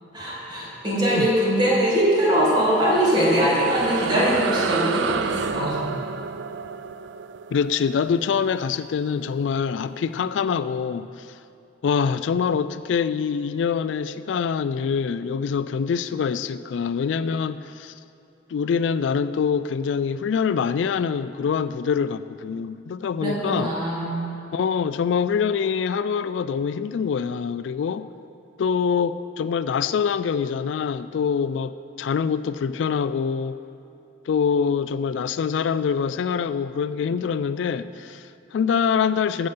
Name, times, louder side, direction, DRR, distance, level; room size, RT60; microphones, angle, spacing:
voice 1, 0.1-5.8 23.2-24.2, right 1 dB, 25° right, -6 dB, 2.8 m, -22 dB
voice 2, 1.0-1.3 7.5-11.3 11.8-17.9 18.5-23.7 24.5-28.1 28.6-33.6 34.3-39.5, left 6 dB, 75° left, 14 dB, 0.3 m, -25 dB
sound 1, 2.5-9.4, right 6 dB, 70° right, 0.4 m, -31 dB
13.0 x 8.0 x 5.5 m, 2.6 s
head